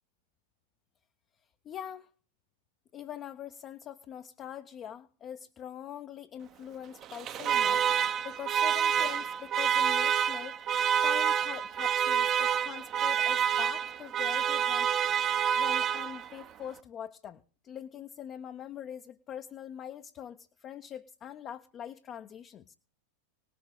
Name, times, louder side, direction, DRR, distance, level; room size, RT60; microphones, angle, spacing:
voice 1, 1.6-2.1 2.9-7.8 8.2-10.6 11.0-14.9 15.6-22.7, left 9 dB, 30° left, 7 dB, 0.6 m, -43 dB
Alarm, 7.0-16.4, right 8 dB, 35° right, 0.7 m, -28 dB
19.0 x 6.8 x 4.9 m, 0.41 s
figure-of-eight pair, 90°, 0 cm